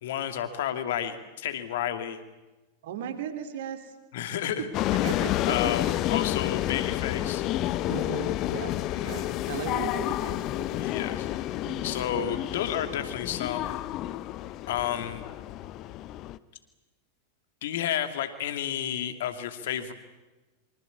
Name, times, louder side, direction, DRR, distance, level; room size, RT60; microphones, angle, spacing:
voice 1, 0.0-2.2 4.1-4.7 5.5-7.5 8.9-9.3 10.8-11.3 11.8-13.8 14.7-15.2 17.6-19.9, left 10 dB, 55° left, 8 dB, 2.6 m, -31 dB
voice 2, 2.8-3.9 4.3-4.4 5.0-5.9 7.9-8.7 9.0-10.9 11.6-12.0, right 9 dB, 55° right, 8 dB, 3.1 m, -37 dB
sound 1, 4.7-16.4, left 14 dB, 35° left, 0.9 m, -30 dB
26.5 x 25.0 x 8.5 m, 1.1 s
figure-of-eight pair, 90°, 0 cm